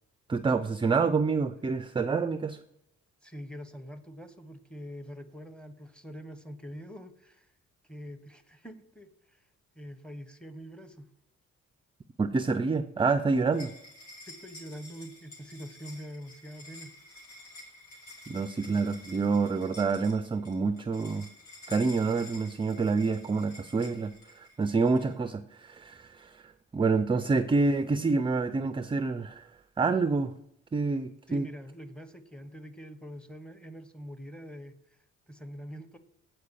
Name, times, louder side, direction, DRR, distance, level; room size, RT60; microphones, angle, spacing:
voice 1, 0.3-2.6 12.2-13.7 18.3-21.3 21.7-29.5 29.8-30.3 30.7-31.5, right 4 dB, 15° right, 11 dB, 0.4 m, -27 dB
voice 2, 3.2-7.5 7.9-9.4 9.8-11.1 14.3-16.9 31.3-34.7 35.3-36.0, equal, 5° left, 9 dB, 0.9 m, -44 dB
sound 1, 13.5-25.1, left 1 dB, 90° left, 2.8 m, -50 dB
8.5 x 4.4 x 6.8 m, 0.76 s
cardioid pair, 90°, 30 cm